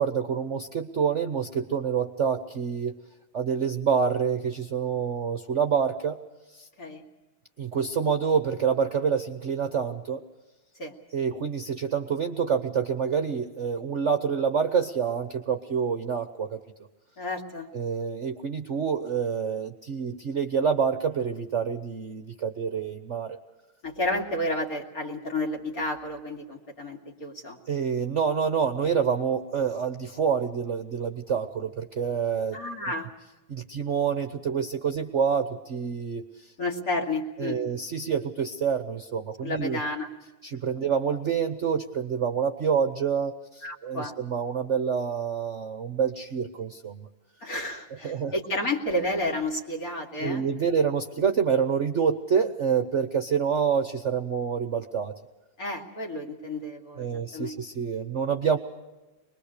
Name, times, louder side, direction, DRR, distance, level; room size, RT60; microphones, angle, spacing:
voice 1, 0.0-3.0 3.3-6.2 6.5-6.7 7.6-10.2 11.1-16.6 17.7-23.4 27.7-32.6 33.5-36.5 37.4-39.8 40.4-47.1 48.0-48.3 50.2-55.1 57.0-58.6, right 6 dB, 45° right, 7 dB, 1.0 m, -27 dB
voice 2, 17.2-17.7 23.8-27.6 32.5-33.1 36.6-37.6 39.4-40.1 43.6-44.1 47.4-50.5 55.6-57.5, left 1 dB, 45° left, 2 dB, 2.9 m, -31 dB
25.0 x 21.5 x 6.6 m, 1.1 s
omnidirectional pair, 2.2 m